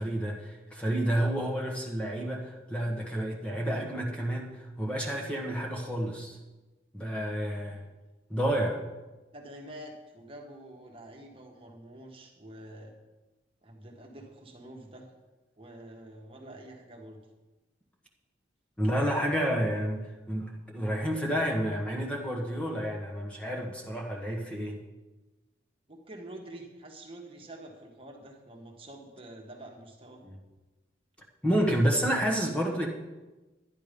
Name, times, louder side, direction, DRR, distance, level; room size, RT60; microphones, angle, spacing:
voice 1, 0.0-6.4 6.9-7.8 8.3-8.8 18.8-24.8 30.2-30.4 31.4-32.9, equal, 5° left, -1 dB, 1.4 m, -30 dB
voice 2, 9.3-12.9 13.6-15.1 15.6-17.2 25.9-30.2, right 1 dB, 30° right, 1 dB, 1.5 m, -47 dB
11.0 x 10.5 x 5.2 m, 1.1 s
head